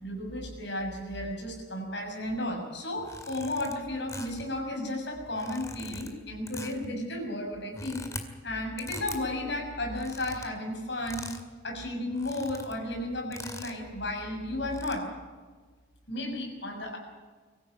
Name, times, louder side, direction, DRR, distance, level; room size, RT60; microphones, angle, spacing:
voice 1, 0.0-8.0 8.4-11.3 11.6-15.1 16.1-17.0, left 1 dB, 60° left, 2 dB, 6.7 m, -33 dB
sound 1, 3.0-3.7 4.1-4.5 5.3-6.1 6.5-6.9 7.6-8.2 8.8-9.2 9.9-10.5 11.1-11.5 11.8-11.9 12.1-12.8 13.3-13.8 14.6-14.9, left 2 dB, 15° left, 2.2 m, -42 dB
24.0 x 15.0 x 9.2 m, 1.4 s
head